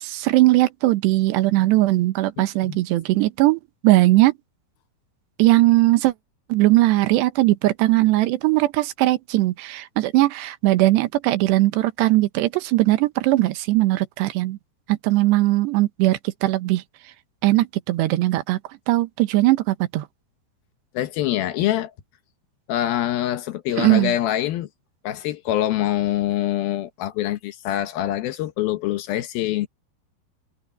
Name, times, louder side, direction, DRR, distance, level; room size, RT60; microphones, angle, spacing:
voice 1, 0.0-4.3 5.4-6.1 6.5-14.6 14.9-16.8 17.4-18.6 18.9-20.1 23.8-24.1, right 17 dB, 90° right, 3.2 m, -19 dB
voice 2, 20.9-21.9 22.7-24.7 25.0-29.7, left 13 dB, 70° left, 2.7 m, -24 dB
omnidirectional pair, 4.7 m